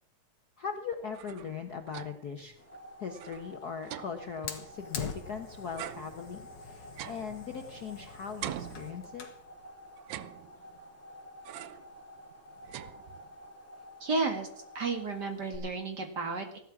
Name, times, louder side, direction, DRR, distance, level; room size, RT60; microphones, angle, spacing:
voice 1, 0.6-2.6 3.0-9.3, left 6 dB, 80° left, 5 dB, 0.8 m, -40 dB
sound 1, 0.9-2.4 2.7-2.8 3.1-5.3 5.8-8.0 8.4-9.5 10.0-10.9 11.4-12.0 12.3-13.5, right 12 dB, 75° right, 2.0 m, -44 dB
sound 2, 2.4-15.6, left 1 dB, 5° left, 3.4 m, -51 dB
Fire, 4.5-9.4, left 6 dB, 50° left, 2.6 m, -44 dB
voice 2, 14.0-14.5 14.7-16.6, right 3 dB, 35° right, 5 dB, 2.3 m, -32 dB
15.5 x 12.5 x 6.0 m, 0.66 s
omnidirectional pair, 3.5 m